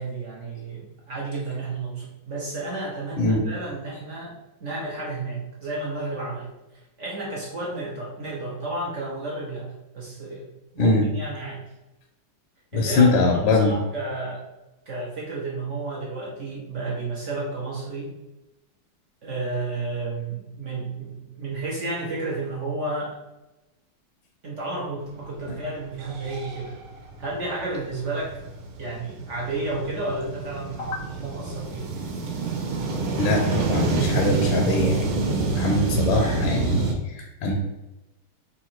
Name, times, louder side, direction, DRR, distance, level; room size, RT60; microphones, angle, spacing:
voice 1, 0.0-4.3 4.6-6.5 7.0-9.7 9.9-10.5 10.7-11.6 12.7-14.4 14.9-18.1 19.2-23.2 24.4-26.8 27.2-28.4 28.8-31.9, right 2 dB, 60° right, -3 dB, 0.8 m, -32 dB
voice 2, 12.7-13.7 30.8-31.0 33.2-37.5, left 2 dB, 75° left, 1 dB, 1.3 m, -22 dB
Steam-Train Molli - with whistle and arrival, 25.4-25.5 25.9-36.9, right 3 dB, 80° right, 1.5 m, -27 dB
3.7 x 2.6 x 4.3 m, 0.98 s
omnidirectional pair, 2.3 m